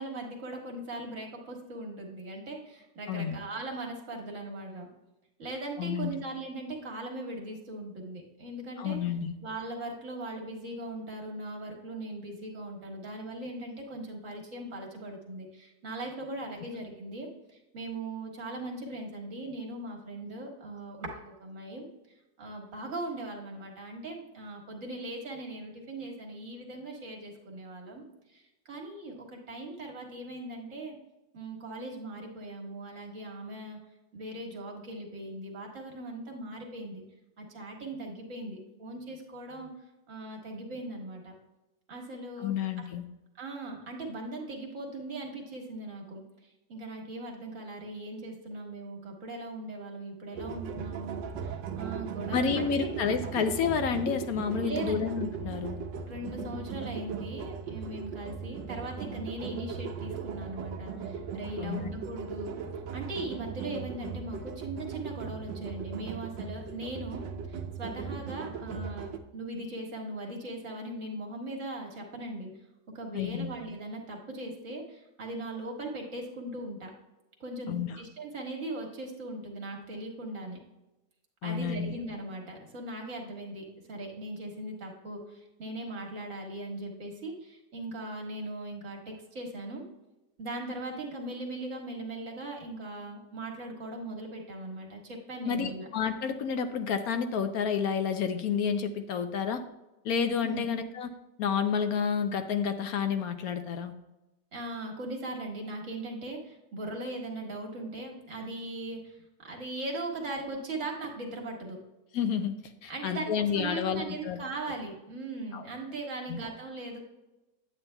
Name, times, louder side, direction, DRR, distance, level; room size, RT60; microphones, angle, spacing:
voice 1, 0.0-4.9 5.4-9.0 9.4-21.9 22.4-30.9 31.3-33.8 34.1-37.0 37.4-39.7 40.1-41.3 41.9-42.5 43.3-46.2 46.7-52.9 54.6-55.0 56.1-62.5 62.9-72.5 72.9-76.9 77.4-80.6 81.4-89.8 90.4-95.9 100.4-100.6 104.5-111.8 112.9-117.0, right 2 dB, 45° right, 0 dB, 1.8 m, -39 dB
voice 2, 5.8-6.1 8.8-9.4 42.4-43.0 52.3-55.8 61.6-61.9 73.1-73.5 77.7-78.0 81.4-81.9 95.4-99.6 100.0-101.1 101.4-103.9 112.1-112.5 112.8-114.4 115.5-115.7 116.3-116.4, left 7 dB, 70° left, 9 dB, 0.9 m, -30 dB
sound 1, 50.3-69.2, right 6 dB, 80° right, 1.3 m, -38 dB
9.4 x 8.7 x 2.2 m, 1.0 s
omnidirectional pair, 1.9 m